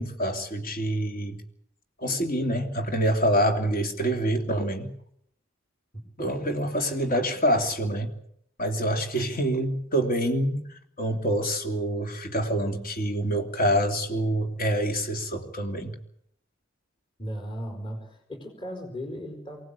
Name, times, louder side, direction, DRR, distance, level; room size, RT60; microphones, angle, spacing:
voice 1, 0.0-1.4 2.0-4.9 6.2-8.1 8.6-15.9, equal, 45° left, 3 dB, 3.1 m, -26 dB
voice 2, 17.2-19.6, equal, 25° left, 4 dB, 4.7 m, -37 dB
24.0 x 18.5 x 8.4 m, 0.72 s
head